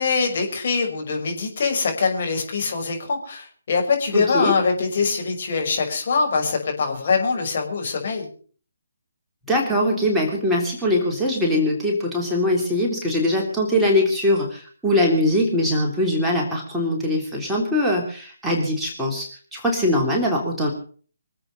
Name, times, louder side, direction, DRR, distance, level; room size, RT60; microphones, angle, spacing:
voice 1, 0.0-8.3, left 4 dB, 45° left, 2 dB, 5.8 m, -23 dB
voice 2, 4.1-4.5 9.5-20.7, left 1 dB, 5° right, -4 dB, 3.3 m, -22 dB
25.0 x 8.4 x 6.7 m, 0.44 s
figure-of-eight pair, 145°, 0 cm